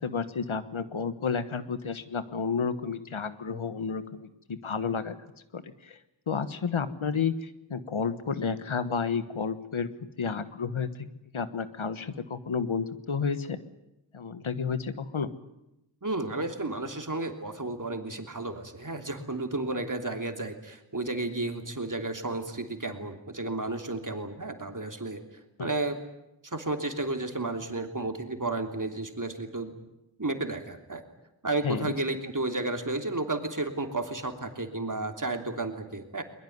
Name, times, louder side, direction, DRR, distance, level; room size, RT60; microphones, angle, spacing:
voice 1, 0.0-5.1 5.5-6.0 6.3-9.9 10.2-11.1 11.3-13.6 14.1-15.3 25.6-25.7 31.6-31.9, left 5 dB, 85° left, 12 dB, 1.4 m, -31 dB
voice 2, 16.0-25.2 25.6-26.0 26.4-29.7 30.2-31.0 31.4-36.2, right 2 dB, 40° right, 5 dB, 3.2 m, -32 dB
22.0 x 21.5 x 9.5 m, 0.90 s
wide cardioid pair, 50°, 47 cm